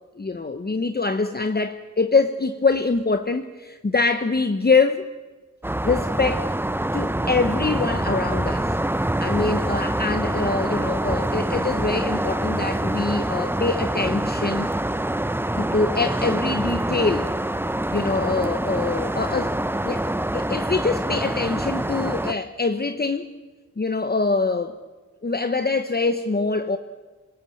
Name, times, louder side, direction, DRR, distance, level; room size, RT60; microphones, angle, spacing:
voice 1, 0.2-5.1 5.8-6.5 6.9-8.7 9.2-14.7 15.6-17.3 17.9-23.3 23.8-24.7 25.2-26.8, left 3 dB, 30° left, 0.9 m, -24 dB
sound 1, 5.6-22.3, right 1 dB, 5° right, 0.6 m, -25 dB
27.0 x 17.5 x 7.7 m
wide cardioid pair, 100°, 31 cm